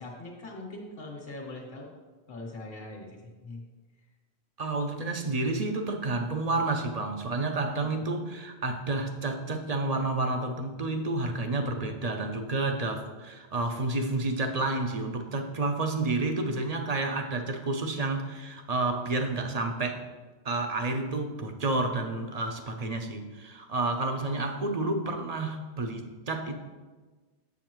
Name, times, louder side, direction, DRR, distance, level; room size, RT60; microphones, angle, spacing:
voice 1, 0.0-1.9 2.3-3.6 7.8-7.9, left 2 dB, 60° left, 0 dB, 1.4 m, -41 dB
voice 2, 4.6-20.0 20.4-26.6, right 2 dB, 45° right, 4 dB, 0.6 m, -30 dB
7.2 x 7.1 x 3.0 m, 1.3 s
omnidirectional pair, 1.1 m